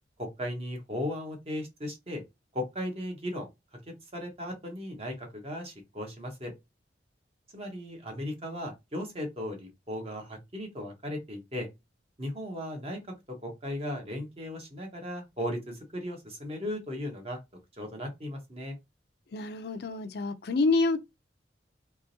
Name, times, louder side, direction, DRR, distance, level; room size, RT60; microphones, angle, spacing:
voice 1, 0.2-2.2 2.5-3.5 4.1-6.5 7.5-11.7 12.2-13.0 13.4-17.4 17.8-18.8, left 1 dB, 35° right, 1.1 m, -36 dB
voice 2, 19.3-21.1, left 3 dB, 60° left, 0.5 m, -27 dB
3.6 x 3.0 x 2.7 m
head